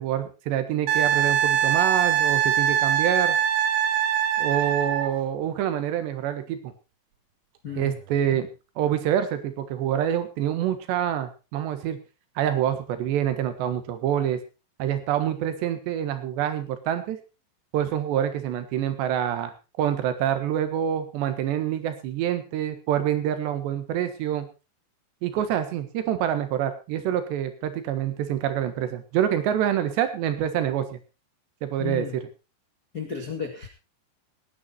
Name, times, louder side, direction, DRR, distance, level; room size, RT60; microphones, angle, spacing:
voice 1, 0.0-3.4 4.4-6.7 7.8-8.5 8.8-12.0 12.4-14.4 14.8-17.2 17.7-24.5 25.2-31.0 31.6-32.3, right 10 dB, 65° right, 10 dB, 3.4 m, -26 dB
Wind instrument woodwind instrument, 0.9-5.1 7.8-7.9, right 9 dB, 90° right, 4.2 m, -22 dB
voice 2, 7.6-8.0 31.8-32.2 32.9-33.7, left 6 dB, 70° left, 2 dB, 0.8 m, -33 dB
18.5 x 10.0 x 4.3 m, 0.31 s
omnidirectional pair, 5.8 m